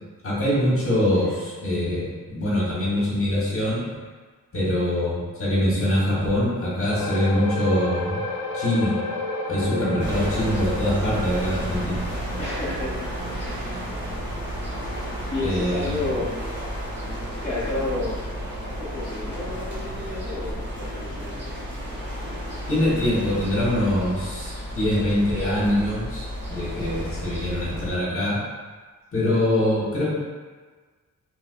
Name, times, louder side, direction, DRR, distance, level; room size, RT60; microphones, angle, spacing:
voice 1, 0.2-3.8 4.5-8.2 8.5-8.9 9.5-12.0 15.4-16.1 22.7-28.4 29.1-30.1, left 1 dB, 40° left, -7 dB, 1.1 m, -24 dB
sound 1, 7.0-19.7 20.0-20.2 20.7-20.8, left 2 dB, 75° left, 0.5 m, -35 dB
voice 2, 9.7-10.3 12.4-12.9 13.3-13.7 15.1-16.3 17.4-18.2 18.8-21.5, left 2 dB, 20° left, -11 dB, 0.6 m, -31 dB
sound 2, 10.0-27.9, equal, 35° right, 0.9 m, -32 dB
3.1 x 3.0 x 2.4 m, 1.4 s
wide cardioid pair, 150°, 34 cm